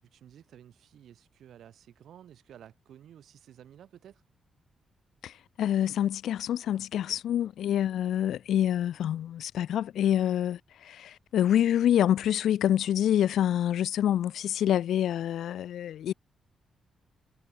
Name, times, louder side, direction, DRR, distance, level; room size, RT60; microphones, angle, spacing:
voice 1, 0.0-4.2 6.7-7.5, right 10 dB, 75° right, 7.7 m, -53 dB
voice 2, 5.2-16.1, left 11 dB, 75° left, 0.9 m, -27 dB
supercardioid pair, 50°, 0 cm